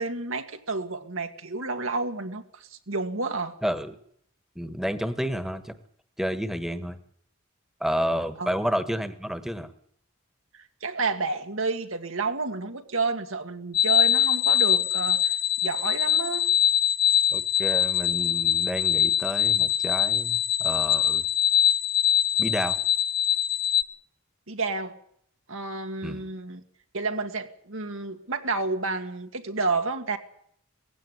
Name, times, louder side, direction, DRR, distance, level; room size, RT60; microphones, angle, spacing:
voice 1, 0.0-3.6 8.4-8.6 10.5-15.3 15.6-16.5 24.5-25.0 25.5-26.6 26.9-30.2, right 3 dB, 80° right, 5 dB, 2.0 m, -30 dB
voice 2, 3.6-4.0 4.5-5.7 6.2-7.0 7.8-9.7 17.3-21.2 22.4-22.8 26.0-26.2, equal, ahead, 10 dB, 1.4 m, -30 dB
sound 1, 13.7-23.8, left 9 dB, 50° left, 0.8 m, -23 dB
18.5 x 16.0 x 9.8 m, 0.66 s
head